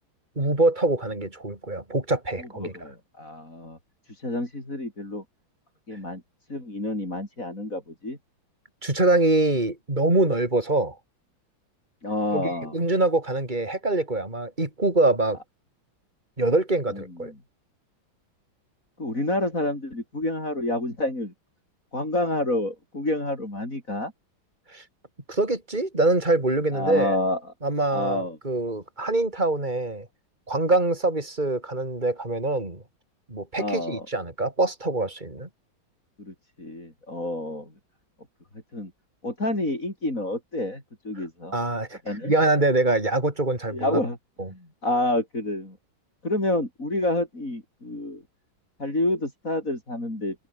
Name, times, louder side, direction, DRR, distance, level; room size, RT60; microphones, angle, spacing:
voice 1, 0.4-2.7 8.8-11.0 12.3-15.4 16.4-17.3 24.7-24.8 25.3-27.2 27.6-30.1 30.5-32.8 33.3-35.5 41.2-41.3 41.5-44.0 44.4-44.5, right 2 dB, 20° right, 5.5 m, -24 dB
voice 2, 2.4-3.8 4.1-5.2 5.9-6.2 6.5-8.2 12.0-12.8 16.9-17.3 19.0-21.3 21.9-24.1 26.7-27.4 27.9-28.4 33.6-34.1 36.2-37.7 38.7-38.9 39.2-41.5 42.1-42.3 43.7-44.2 44.5-45.8 46.2-48.2 48.8-50.4, left 1 dB, 40° left, 7.6 m, -28 dB
omnidirectional pair, 2.2 m